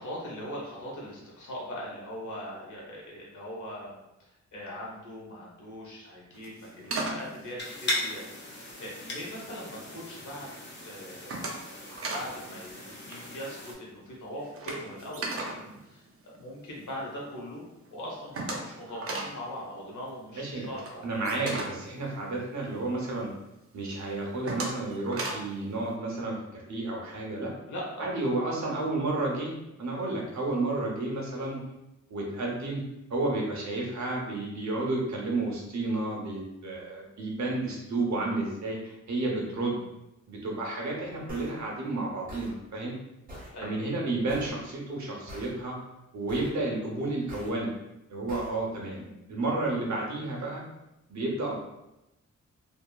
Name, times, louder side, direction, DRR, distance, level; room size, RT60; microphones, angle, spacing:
voice 1, 0.0-10.5 10.8-11.8 12.1-21.1 27.7-28.1 28.6-28.8 39.6-39.8 43.5-43.8 48.8-49.2, equal, 85° left, -4 dB, 1.1 m, -41 dB
sound 1, 6.3-8.9 9.3-9.9 10.2-10.6 10.9-12.4 12.6-12.8 13.0-16.8 17.2-17.3 17.6-17.7 17.8-22.9 23.3-23.4 23.9-25.6, right 2 dB, 50° right, 0.6 m, -37 dB
sound 2, 7.6-13.7, left 1 dB, 40° left, 0.8 m, -38 dB
voice 2, 20.3-20.7 21.0-23.3 23.7-27.5 28.0-29.5 29.8-31.6 32.1-32.8 33.1-39.8 40.3-43.0 43.6-45.8 46.1-47.7 48.1-49.0 49.3-50.6 51.1-51.6, right 2 dB, 70° right, -2 dB, 0.9 m, -31 dB
sound 3, 41.3-41.5 42.3-42.5 43.3-43.5 44.3-44.5 45.3-45.5 46.3-46.5 47.3-47.5 48.3-48.5, equal, 30° right, 1.0 m, -43 dB
2.7 x 2.7 x 2.3 m, 0.92 s
cardioid pair, 85°, 30 cm